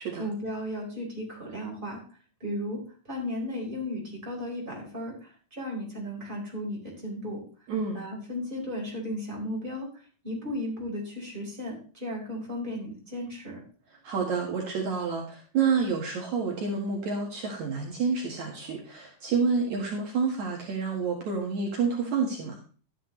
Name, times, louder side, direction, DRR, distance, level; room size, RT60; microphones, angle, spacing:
voice 1, 0.2-2.0 2.4-2.8 3.0-7.4 7.9-9.9 10.2-13.6, left 1 dB, 15° right, -2 dB, 4.5 m, -35 dB
voice 2, 7.7-8.0 13.9-22.6, right 5 dB, 65° right, -1 dB, 2.9 m, -29 dB
13.0 x 9.7 x 3.2 m, 0.40 s
omnidirectional pair, 3.8 m